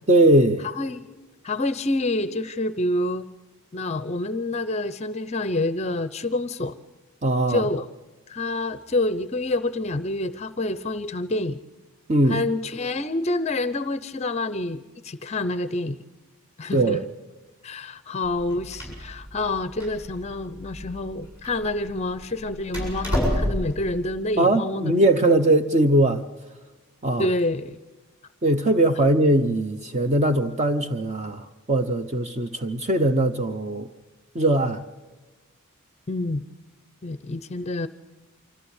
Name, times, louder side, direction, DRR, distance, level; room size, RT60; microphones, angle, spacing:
voice 1, 0.1-0.7 7.2-7.7 12.1-12.4 16.7-17.1 24.4-26.2 27.0-27.3 28.4-33.9 34.3-34.8, right 1 dB, 30° right, 8 dB, 0.7 m, -20 dB
voice 2, 0.6-1.1 1.4-3.3 3.7-6.7 7.5-7.9 8.3-11.6 12.3-16.0 16.6-17.0 17.6-25.4 27.2-27.8 36.1-36.5 37.0-37.9, left 2 dB, 30° left, 14 dB, 0.5 m, -27 dB
Door, 18.2-23.8, equal, 10° right, 7.6 m, -30 dB
25.0 x 14.5 x 8.1 m, 1.3 s
head